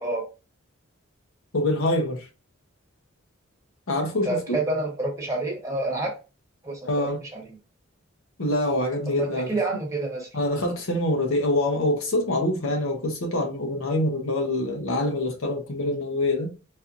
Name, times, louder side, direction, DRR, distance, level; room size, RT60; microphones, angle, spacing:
voice 1, 1.5-2.3 3.9-4.6 6.9-7.2 8.4-9.6 10.3-16.5, left 1 dB, 75° left, 0.8 m, -25 dB
voice 2, 4.2-6.2 6.6-7.4 9.1-10.3 15.9-16.0, right 2 dB, 15° right, 1.1 m, -28 dB
4.2 x 2.5 x 2.5 m
head